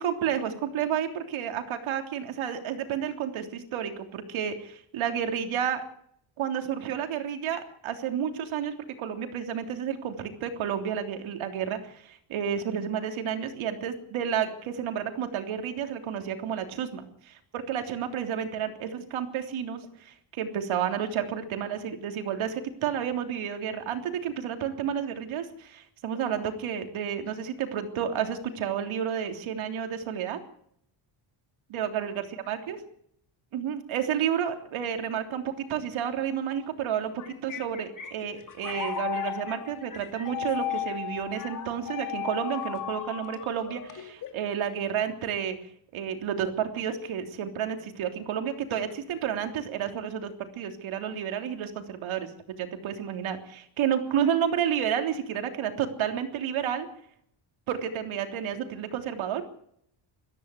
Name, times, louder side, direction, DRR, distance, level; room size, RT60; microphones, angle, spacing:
voice 1, 0.0-5.8 6.4-30.4 31.7-32.8 33.5-37.1 37.4-45.6 45.9-56.9 57.7-59.4, right 8 dB, 85° right, 5 dB, 3.4 m, -31 dB
sound 1, 36.9-44.5, left 10 dB, 40° left, 2.7 m, -35 dB
22.5 x 15.0 x 8.4 m, 0.69 s
cardioid pair, 170°, 47 cm